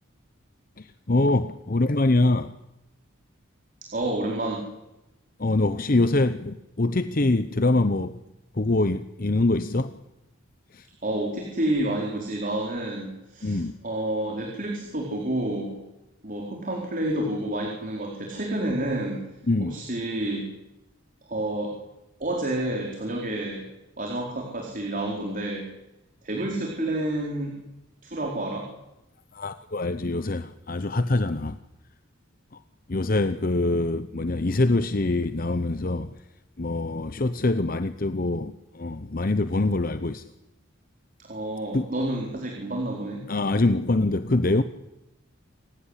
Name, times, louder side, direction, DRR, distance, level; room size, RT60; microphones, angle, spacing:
voice 1, 0.8-2.5 5.4-8.2 8.5-10.0 10.7-10.8 13.4-13.8 19.5-19.8 29.3-31.6 32.9-36.1 36.6-40.2 41.7-41.9 43.3-44.6, left 2 dB, 45° left, 11 dB, 0.8 m, -24 dB
voice 2, 3.8-4.6 11.0-15.8 16.2-19.2 19.6-20.5 21.3-21.8 22.2-23.7 24.0-25.7 26.2-27.6 28.0-28.7 41.2-43.3, right 1 dB, 40° right, 0 dB, 4.4 m, -29 dB
27.0 x 16.5 x 10.0 m, 0.92 s
head